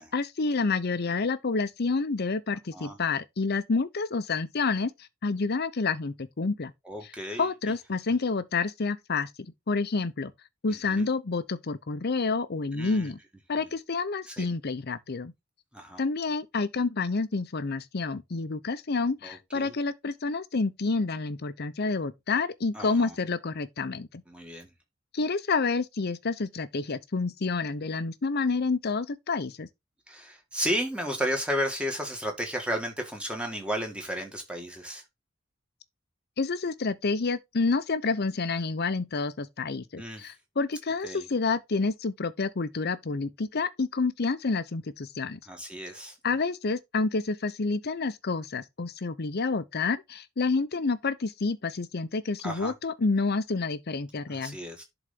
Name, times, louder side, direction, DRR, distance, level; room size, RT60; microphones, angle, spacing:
voice 1, 0.0-4.9 5.2-6.7 7.4-9.3 9.7-10.3 10.6-13.2 13.5-15.3 16.0-24.1 25.1-29.7 36.4-45.4 46.2-54.6, left 4 dB, 50° left, 0.7 m, -29 dB
voice 2, 6.9-7.7 10.9-11.1 12.7-13.1 13.6-13.7 14.3-14.5 15.7-16.0 19.2-19.7 22.7-23.1 24.3-24.7 30.1-35.0 40.0-40.3 41.0-41.3 45.5-46.2 52.4-52.7 54.3-54.8, equal, 5° right, 1.9 m, -33 dB
11.0 x 4.0 x 3.7 m
head